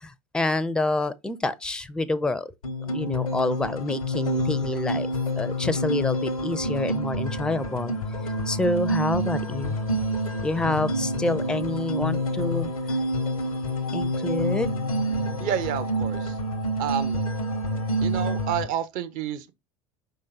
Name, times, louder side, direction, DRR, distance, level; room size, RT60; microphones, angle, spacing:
voice 1, 0.0-2.5 2.9-5.1 5.4-7.9 8.5-9.7 10.4-12.7 13.9-14.7, left 2 dB, 5° left, 0.4 m, -27 dB
sound 1, 2.6-18.6, equal, 85° left, 0.7 m, -28 dB
voice 2, 15.4-16.4 16.8-17.2 18.0-19.5, right 10 dB, 50° right, 0.7 m, -30 dB
5.0 x 3.8 x 2.6 m
figure-of-eight pair, 70°, 18 cm